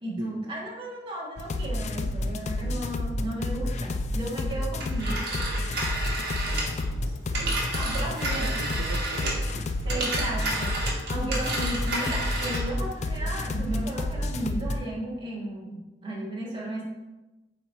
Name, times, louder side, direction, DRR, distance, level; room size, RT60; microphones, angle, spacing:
voice 1, 0.0-5.4 7.7-8.5 9.9-16.8, right 1 dB, 30° right, -4 dB, 1.6 m, -34 dB
sound 1, 1.4-14.8, left 1 dB, 40° left, 0.4 m, -30 dB
Telephone, 4.8-9.5 9.8-12.7, right 2 dB, 60° right, 1.6 m, -31 dB
voice 2, 7.3-7.6 7.9-10.1, right 2 dB, 80° right, 3 dB, 0.6 m, -40 dB
8.0 x 3.0 x 4.2 m, 1.1 s
head